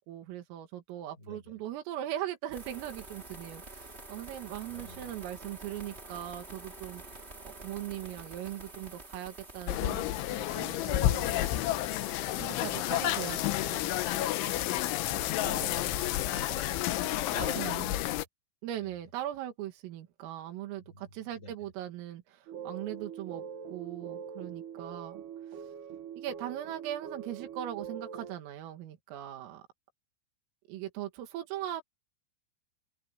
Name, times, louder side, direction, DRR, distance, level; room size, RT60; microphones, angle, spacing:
voice 1, 0.0-7.2 7.6-10.0 10.3-11.3 12.1-14.0 17.6-17.9 18.6-25.2 25.5-25.7 26.2-29.6 30.7-31.8, right 12 dB, 85° right, 4.8 m, -40 dB
voice 2, 1.2-1.5 4.7-5.1 15.4-16.6 17.3-18.3 18.8-19.0 20.9-21.5, equal, 15° left, 4.8 m, -44 dB
sound 1, 2.5-17.7, right 2 dB, 15° right, 2.3 m, -48 dB
sound 2, 9.7-18.2, left 15 dB, 75° left, 3.2 m, -30 dB
sound 3, 22.5-28.4, right 7 dB, 60° right, 3.6 m, -43 dB
omnidirectional pair, 5.8 m